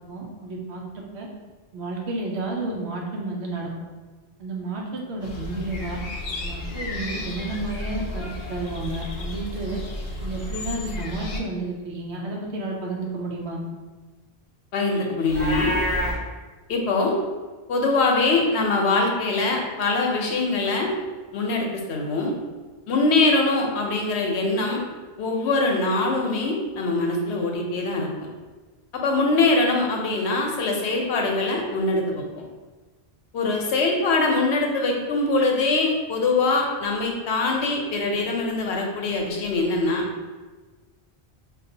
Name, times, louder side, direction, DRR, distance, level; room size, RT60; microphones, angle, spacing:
voice 1, 0.1-1.3 1.7-3.7 4.4-6.0 6.4-9.8 10.2-13.6, right 2 dB, 85° right, -2 dB, 0.9 m, -31 dB
sound 1, 5.2-11.4, left 2 dB, 70° left, 0.8 m, -33 dB
voice 2, 14.7-15.8 16.7-17.2 17.7-20.9 21.3-22.3 22.9-24.8 25.2-28.1 28.9-32.2 33.3-40.0, left 3 dB, 90° left, 1 dB, 0.9 m, -23 dB
Livestock farm animals working animals, 15.3-16.2, left 1 dB, 15° left, 1.0 m, -25 dB
5.3 x 2.4 x 2.7 m, 1.3 s
omnidirectional pair, 1.1 m